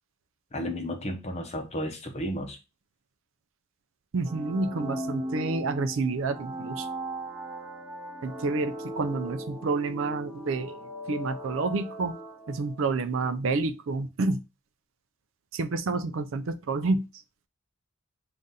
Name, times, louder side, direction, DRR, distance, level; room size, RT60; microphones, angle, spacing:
voice 1, 0.5-2.6, equal, 30° left, 0.7 m, -33 dB
voice 2, 4.1-6.9 8.2-10.8 11.1-12.1 12.5-14.4 15.5-17.1, right 3 dB, 70° right, 0.4 m, -29 dB
sound 1, 4.2-12.9, right 1 dB, 25° right, 1.8 m, -38 dB
3.8 x 2.5 x 4.0 m
head